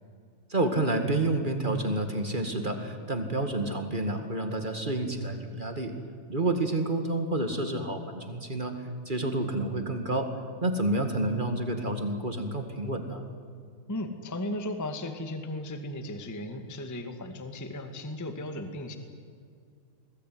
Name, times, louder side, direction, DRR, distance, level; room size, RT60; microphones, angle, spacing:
voice 1, 0.5-5.9 6.3-10.3 10.6-13.2, right 2 dB, 25° right, 6 dB, 1.0 m, -29 dB
voice 2, 13.9-19.0, left 1 dB, 10° left, 7 dB, 0.8 m, -36 dB
28.0 x 20.5 x 9.4 m, 2.3 s
omnidirectional pair, 4.2 m